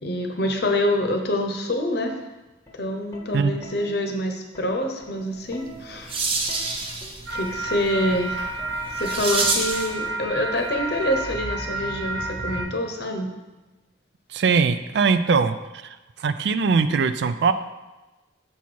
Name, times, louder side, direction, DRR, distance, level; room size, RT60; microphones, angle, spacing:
voice 1, 0.0-2.2 2.7-6.2 7.3-8.7 9.0-13.3, left 1 dB, 55° left, 4 dB, 0.8 m, -26 dB
Plucked string instrument, 2.5-9.7 10.8-11.1, equal, 15° left, 0.9 m, -47 dB
sound 1, 5.5-10.0, right 3 dB, 30° right, 0.7 m, -28 dB
sound 2, 7.3-12.6, right 2 dB, 80° right, 1.3 m, -30 dB
voice 2, 14.3-15.6 16.2-17.5, right 5 dB, 60° right, 11 dB, 0.3 m, -20 dB
7.0 x 4.3 x 4.6 m, 1.1 s
head